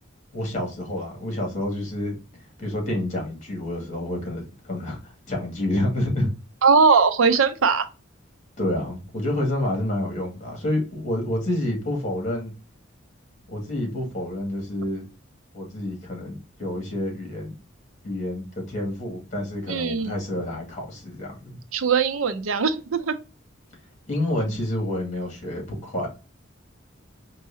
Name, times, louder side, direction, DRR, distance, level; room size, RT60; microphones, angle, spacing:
voice 1, 0.3-2.1 2.6-6.3 8.6-12.5 13.5-15.0 15.5-17.5 18.0-21.6 24.1-26.1, left 1 dB, 35° left, 2.1 m, -28 dB
voice 2, 6.6-7.9 19.7-20.1 21.7-23.2, right 5 dB, 90° right, 0.6 m, -20 dB
4.6 x 3.0 x 2.7 m
head